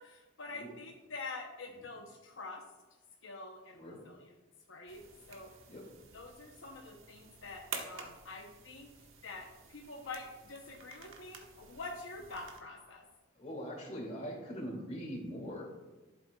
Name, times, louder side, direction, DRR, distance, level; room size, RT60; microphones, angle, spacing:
voice 1, 0.0-2.6 3.2-4.2 4.7-5.5 6.1-8.9 9.2-13.1, left 3 dB, 75° left, 1 dB, 0.8 m, -46 dB
sound 1, 4.9-12.6, right 5 dB, 90° right, 1.2 m, -50 dB
voice 2, 13.3-15.7, equal, 35° left, -2 dB, 2.3 m, -42 dB
12.0 x 7.5 x 2.3 m, 1.2 s
head